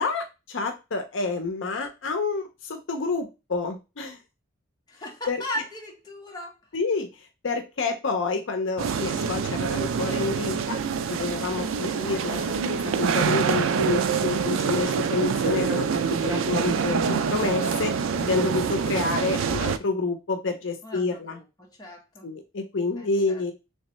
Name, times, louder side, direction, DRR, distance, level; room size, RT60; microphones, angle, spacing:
voice 1, 0.0-4.2 5.3-5.4 6.7-7.1 7.4-10.8 11.1-12.6 13.0-17.9 18.2-21.4 22.2-23.5, left 3 dB, 70° left, 0.6 m, -28 dB
voice 2, 4.9-6.5 20.8-22.3 22.9-23.4, left 1 dB, 20° left, 1.0 m, -37 dB
sound 1, 8.8-19.8, right 6 dB, 90° right, 0.4 m, -26 dB
3.4 x 3.2 x 3.0 m
head